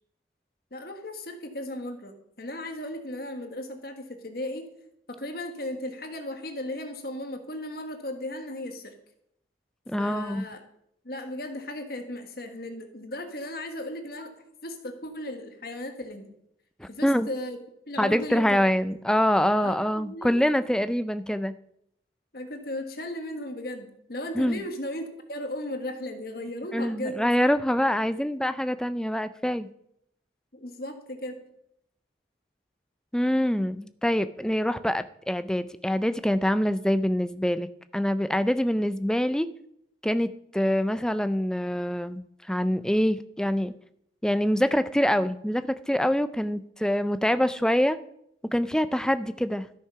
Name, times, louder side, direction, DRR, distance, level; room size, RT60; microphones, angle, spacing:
voice 1, 0.7-4.7 5.1-8.9 10.0-10.6 11.0-14.3 14.6-16.3 16.9-17.6 17.9-18.6 19.6-20.4 22.3-27.2 30.5-31.4, left 1 dB, 55° left, 5 dB, 1.5 m, -36 dB
voice 2, 9.9-10.4 16.8-17.3 18.0-21.5 24.4-24.6 26.7-29.7 33.1-37.7 37.9-39.5 40.0-43.7 44.2-48.0 48.5-49.7, equal, 5° left, 12 dB, 0.4 m, -25 dB
13.0 x 8.4 x 5.7 m, 0.76 s
head